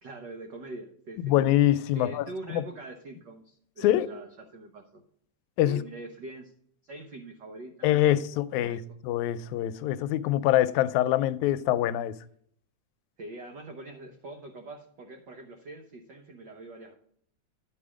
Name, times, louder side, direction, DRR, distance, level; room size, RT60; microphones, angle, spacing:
voice 1, 0.0-1.5 1.9-5.0 5.6-6.5 6.8-7.9 8.5-8.8 13.2-16.9, right 2 dB, 80° right, 0.9 m, -43 dB
voice 2, 1.2-2.2 2.5-2.6 3.8-4.1 5.6-5.8 7.8-12.2, left 13 dB, 90° left, 2.0 m, -24 dB
11.0 x 5.4 x 4.9 m
omnidirectional pair, 3.3 m